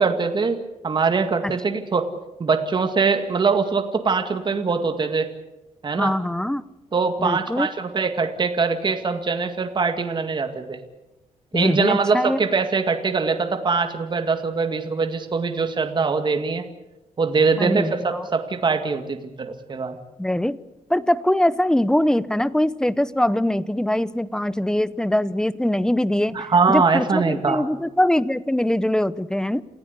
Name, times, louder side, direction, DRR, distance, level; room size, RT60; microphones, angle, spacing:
voice 1, 0.0-2.0 2.4-5.3 5.8-6.1 6.9-10.8 11.5-16.6 17.2-20.0 26.3-27.6, right 4 dB, 35° right, 6 dB, 2.0 m, -22 dB
voice 2, 6.0-6.6 7.2-7.7 11.5-12.4 17.6-18.3 20.2-20.6 20.9-26.4 26.7-29.6, left 1 dB, 5° left, 17 dB, 0.7 m, -22 dB
28.5 x 15.5 x 8.2 m, 0.98 s
wide cardioid pair, 135°, 13 cm